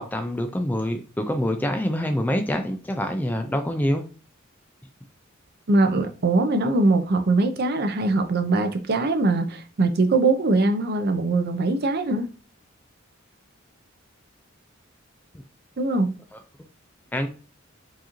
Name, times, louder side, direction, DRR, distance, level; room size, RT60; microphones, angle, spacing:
voice 1, 0.0-4.0 16.3-16.4 17.1-17.3, equal, 10° left, 0.3 m, -26 dB
voice 2, 5.7-12.3 15.8-16.2, right 2 dB, 50° right, 0.6 m, -22 dB
4.6 x 2.6 x 2.9 m
head